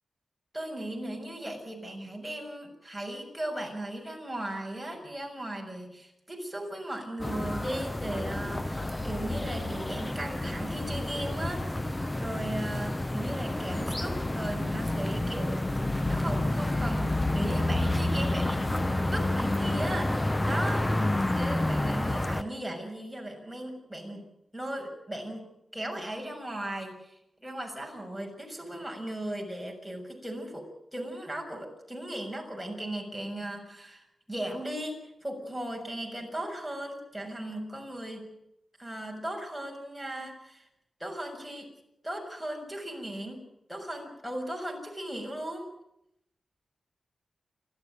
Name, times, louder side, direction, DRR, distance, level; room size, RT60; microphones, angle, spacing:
voice 1, 0.5-15.7 16.1-20.8 21.3-24.2 24.5-25.4 25.7-38.3 38.8-40.7 41.0-41.7 42.0-43.4 43.7-45.7, right 1 dB, ahead, 1 dB, 6.8 m, -37 dB
sound 1, 7.2-22.4, left 1 dB, 15° left, 0.8 m, -29 dB
29.5 x 13.0 x 9.2 m, 0.82 s
wide cardioid pair, 105°, 0 cm